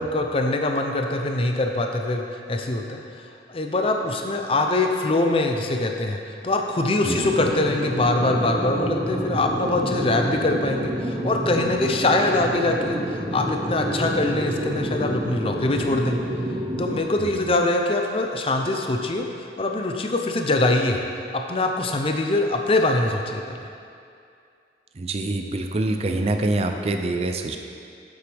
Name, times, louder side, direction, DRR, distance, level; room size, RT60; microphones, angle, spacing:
voice 1, 0.0-3.0 3.5-16.2 16.8-19.3 19.6-21.0 21.3-23.6, left 2 dB, 30° left, 3 dB, 0.5 m, -23 dB
sound 1, 7.1-17.0, equal, 15° right, 0.8 m, -28 dB
voice 2, 25.0-27.6, right 2 dB, 35° right, 5 dB, 0.4 m, -25 dB
7.9 x 7.9 x 3.5 m, 2.4 s
head